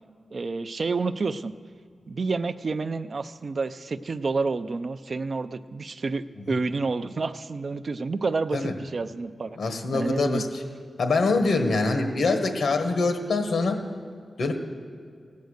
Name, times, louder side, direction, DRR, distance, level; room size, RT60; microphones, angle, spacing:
voice 1, 0.3-1.5 2.1-9.6 9.9-10.4, right 4 dB, 45° right, 12 dB, 0.4 m, -29 dB
voice 2, 9.6-10.5 11.0-13.8 14.4-14.6, left 3 dB, 80° left, 5 dB, 1.4 m, -24 dB
17.0 x 9.3 x 6.5 m, 2.2 s
wide cardioid pair, 145°, 0 cm